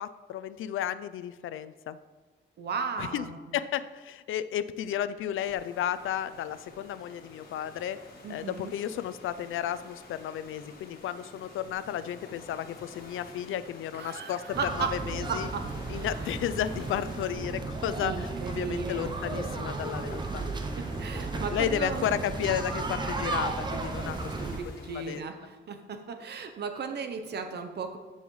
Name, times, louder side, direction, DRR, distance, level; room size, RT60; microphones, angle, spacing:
voice 1, 0.0-2.0 3.0-3.3 3.5-15.5 15.9-20.5 21.1-24.3 24.8-25.3, left 10 dB, 85° left, 14 dB, 0.4 m, -33 dB
voice 2, 2.6-3.4 8.2-8.7 13.9-14.9 15.3-15.6 15.9-16.1 18.0-19.1 21.0-22.0 24.0-24.1 24.6-28.0, right 5 dB, 55° right, 7 dB, 0.7 m, -35 dB
sound 1, 5.4-25.2, left 2 dB, 50° left, 1.6 m, -50 dB
sound 2, 14.5-24.6, right 3 dB, 20° right, 0.6 m, -34 dB
14.0 x 5.6 x 3.1 m, 1.3 s
wide cardioid pair, 170°, 20 cm